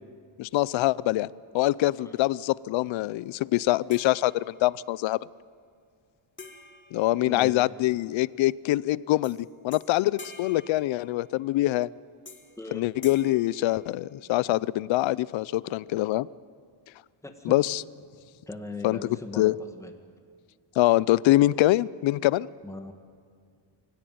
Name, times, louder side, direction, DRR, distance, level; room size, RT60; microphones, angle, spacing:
voice 1, 0.4-1.3 1.5-5.2 6.9-9.4 9.6-11.9 12.7-16.3 17.4-17.8 18.8-19.5 20.8-22.5, left 16 dB, 80° left, 21 dB, 0.6 m, -24 dB
sound 1, 3.9-4.9 6.4-7.9 9.2-9.4 9.7-11.5 12.2-12.6 13.0-14.4, left 4 dB, 25° left, 2.0 m, -48 dB
voice 2, 7.2-7.6 12.6-12.8 17.2-17.6 18.5-19.9 22.6-22.9, left 2 dB, 5° left, 5 dB, 1.8 m, -39 dB
23.5 x 16.5 x 9.3 m, 2.1 s
cardioid pair, 145°, 45 cm